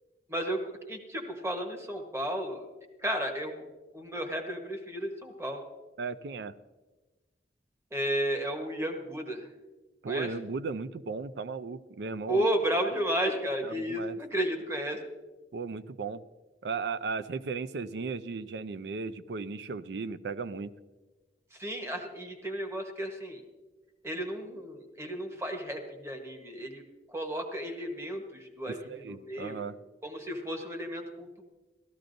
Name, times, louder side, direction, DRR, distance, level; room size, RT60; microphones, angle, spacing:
voice 1, 0.3-2.7 3.0-3.6 3.9-5.6 7.9-9.5 10.1-10.3 12.3-15.0 21.5-23.4 24.0-26.8 27.1-29.6 30.0-31.4, right 1 dB, 15° right, 3 dB, 1.1 m, -33 dB
voice 2, 6.0-6.5 10.0-12.5 13.6-14.2 15.5-16.2 16.6-20.7 28.7-29.8, right 4 dB, 70° right, 14 dB, 0.4 m, -36 dB
16.5 x 13.5 x 2.6 m, 1.2 s
head